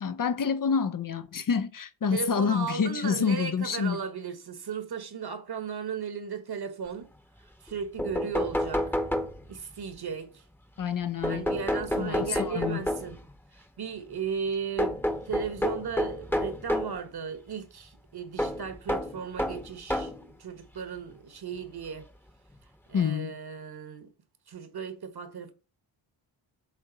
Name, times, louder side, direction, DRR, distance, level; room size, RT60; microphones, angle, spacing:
voice 1, 0.0-4.0 10.8-11.6 12.0-12.8 22.9-23.4, left 6 dB, 45° left, 0.7 m, -28 dB
voice 2, 2.1-7.1 7.6-9.0 9.5-10.4 11.2-13.2 13.6-22.1 22.9-24.1 24.5-25.5, right 6 dB, 55° right, 1.4 m, -36 dB
sound 1, 7.7-7.8 8.0-9.7 11.2-13.3 14.8-17.0 18.4-20.3 21.1-21.2 22.5-22.6 23.0-23.1, left 1 dB, 5° left, 1.0 m, -30 dB
7.4 x 4.1 x 4.0 m
cardioid pair, 70°, 47 cm